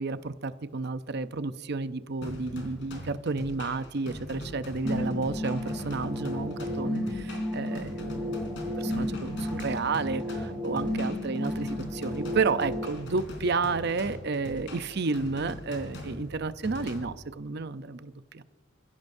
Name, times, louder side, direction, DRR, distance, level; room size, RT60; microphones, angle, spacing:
voice 1, 0.0-8.5 8.8-18.4, right 4 dB, 55° right, 12 dB, 0.6 m, -31 dB
sound 1, 2.2-17.0, left 1 dB, 60° left, 3.6 m, -42 dB
sound 2, 4.8-12.8, left 1 dB, ahead, 3.3 m, -33 dB
28.0 x 16.0 x 2.7 m, 1.2 s
head